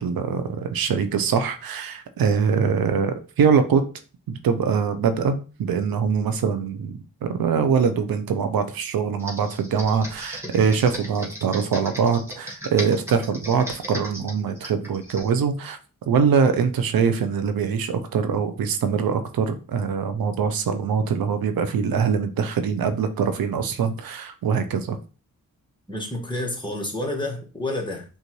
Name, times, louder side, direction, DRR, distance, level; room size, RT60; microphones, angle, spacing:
voice 1, 0.0-3.8 4.3-15.8 16.1-25.0, right 6 dB, 90° right, 9 dB, 0.6 m, -23 dB
Computer keyboard, 9.2-15.3, equal, 5° right, 1.3 m, -37 dB
voice 2, 25.9-28.0, left 1 dB, 15° left, -1 dB, 1.5 m, -29 dB
5.3 x 2.5 x 3.1 m, 0.35 s
cardioid pair, 65°, 34 cm